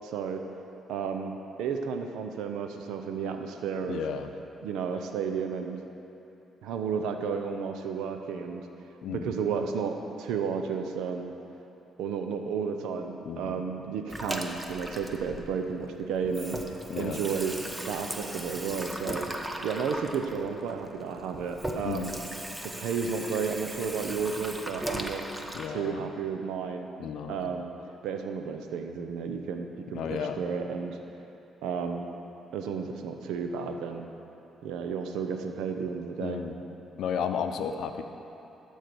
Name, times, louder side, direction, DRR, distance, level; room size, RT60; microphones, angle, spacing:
voice 1, 0.0-0.4 0.9-4.0 4.6-5.8 6.6-8.7 9.1-11.3 12.0-16.6 16.9-17.5 17.9-19.3 19.6-22.1 22.6-25.2 25.7-26.9 27.3-27.7 28.0-31.0 31.6-32.1 32.5-34.1 34.6-36.4, right 6 dB, 90° right, 5 dB, 0.7 m, -32 dB
voice 2, 3.9-4.3 9.0-9.3 13.2-13.6 16.9-17.2 21.8-22.1 25.5-26.0 27.0-27.5 29.9-30.4 36.2-36.6 37.0-38.0, left 7 dB, 75° left, 7 dB, 0.6 m, -33 dB
Water tap faucet / Sink (filling or washing), 14.1-15.9 16.2-25.7, right 1 dB, 10° right, 0.8 m, -37 dB
12.5 x 4.6 x 6.9 m, 3.0 s
cardioid pair, 90°, 0 cm